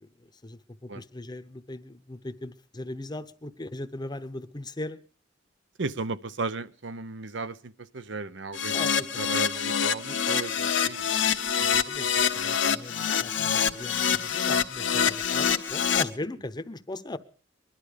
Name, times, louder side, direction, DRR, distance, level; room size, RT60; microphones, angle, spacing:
voice 1, 0.0-5.0 8.7-9.5 11.6-12.1 12.3-17.2, left 2 dB, 25° left, 0.8 m, -39 dB
voice 2, 5.8-8.8 9.2-11.1, right 3 dB, 70° right, 0.7 m, -35 dB
Keyboard (musical), 8.5-16.0, left 7 dB, 75° left, 1.0 m, -26 dB
21.5 x 11.5 x 5.0 m
head